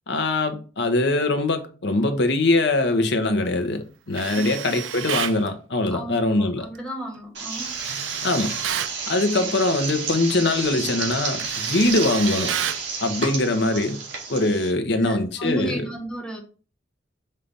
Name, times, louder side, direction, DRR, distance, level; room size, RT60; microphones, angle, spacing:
voice 1, 0.1-6.7 8.2-8.5 9.1-12.5 13.0-14.0 14.3-15.8, left 2 dB, 60° left, 1.0 m, -22 dB
Tools, 4.1-5.4 7.6-9.0 10.5-10.7 11.0-12.9, right 10 dB, 80° right, 0.4 m, -31 dB
voice 2, 5.9-7.8 13.7-13.8 15.0-16.4, right 1 dB, 5° left, 1.3 m, -33 dB
sound 1, 7.3-14.7, right 5 dB, 65° right, 2.0 m, -31 dB
5.6 x 3.3 x 5.3 m
head